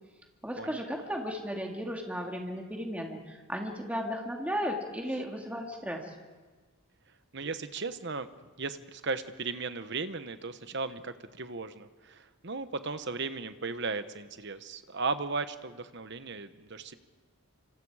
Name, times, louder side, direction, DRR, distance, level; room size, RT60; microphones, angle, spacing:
voice 1, 0.4-6.1, equal, 5° right, 1 dB, 2.3 m, -35 dB
voice 2, 7.3-8.3 8.6-16.9, right 4 dB, 50° right, 11 dB, 1.0 m, -36 dB
27.0 x 25.5 x 4.9 m, 1.3 s
head